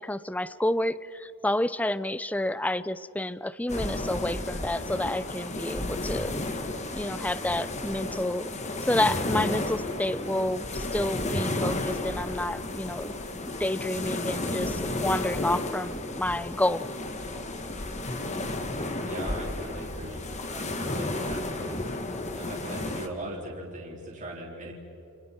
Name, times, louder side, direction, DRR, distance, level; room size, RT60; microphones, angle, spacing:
voice 1, 0.0-6.4 6.9-8.5 8.8-13.1 13.6-16.9, left 1 dB, 5° left, 16 dB, 0.5 m, -29 dB
sound 1, 3.7-23.1, left 2 dB, 30° left, 1.6 m, -32 dB
voice 2, 19.0-21.8 22.3-24.7, right 1 dB, 35° right, -3 dB, 3.9 m, -39 dB
29.5 x 29.5 x 4.5 m, 2.9 s
head